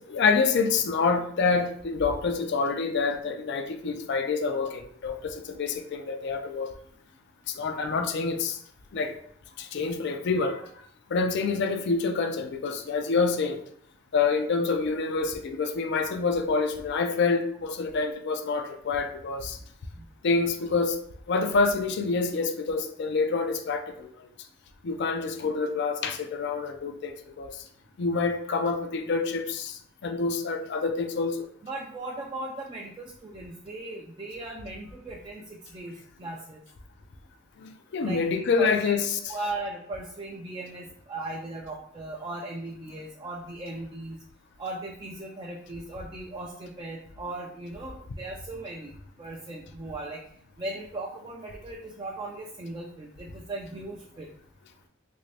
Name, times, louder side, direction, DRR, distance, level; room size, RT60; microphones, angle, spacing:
voice 1, 0.0-6.7 7.5-8.6 8.9-9.1 9.6-10.6 11.1-13.6 14.1-19.6 20.2-21.0 21.3-24.1 24.8-27.6 28.0-31.4 37.6-39.4, left 4 dB, 55° left, 0.4 m, -27 dB
voice 2, 31.6-36.6 38.0-38.9 39.3-44.2 44.6-48.9 49.2-50.2 50.6-54.3, right 2 dB, 25° right, 0.4 m, -38 dB
3.3 x 2.6 x 3.2 m
head